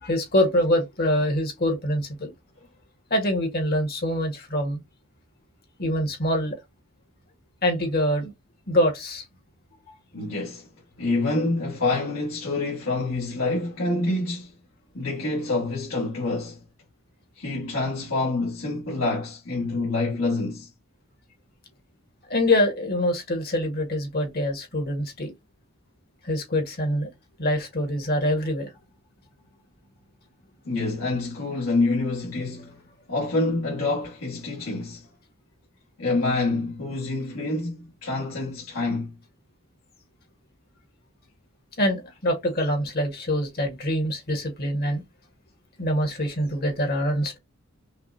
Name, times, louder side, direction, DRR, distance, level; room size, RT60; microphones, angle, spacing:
voice 1, 0.0-2.3 3.1-4.8 5.8-6.6 7.6-8.3 8.7-9.2 22.3-25.3 26.2-27.1 27.4-28.7 41.8-45.0 45.8-47.4, left 1 dB, 50° left, 1.5 m, -24 dB
voice 2, 10.1-10.7 11.0-14.5 14.9-16.6 17.4-20.7 30.6-32.8 33.1-35.1 36.0-39.1, left 2 dB, 85° left, 1.9 m, -27 dB
5.7 x 2.4 x 2.7 m
head